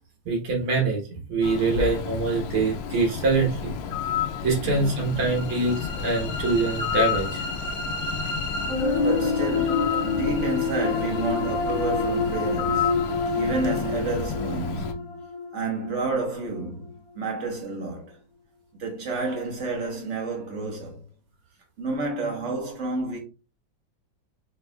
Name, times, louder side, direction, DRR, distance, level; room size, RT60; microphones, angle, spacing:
voice 1, 0.3-1.0 1.3-3.7 4.4-7.5, right 3 dB, 85° right, 2.1 m, -24 dB
Bird, 1.4-14.9, left 8 dB, 80° left, 1.4 m, -31 dB
sound 1, 4.8-16.9, left 3 dB, 55° left, 1.0 m, -28 dB
voice 2, 8.9-15.1 15.5-18.2 18.8-21.0 21.8-23.2, right 2 dB, 45° right, 1.2 m, -30 dB
4.6 x 3.5 x 2.3 m
omnidirectional pair, 2.2 m